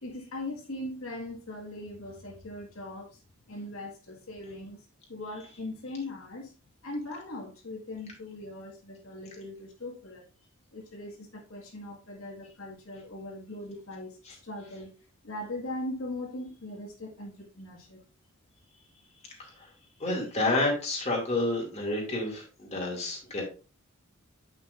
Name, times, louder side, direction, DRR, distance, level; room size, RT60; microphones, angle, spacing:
voice 1, 0.0-3.1 3.5-4.8 5.1-6.5 6.8-10.2 10.7-14.9 15.2-18.0, left 1 dB, 85° left, 1.9 m, -40 dB
voice 2, 19.4-19.7 20.0-23.4, left 2 dB, 30° left, 2.5 m, -29 dB
9.1 x 5.7 x 2.5 m
head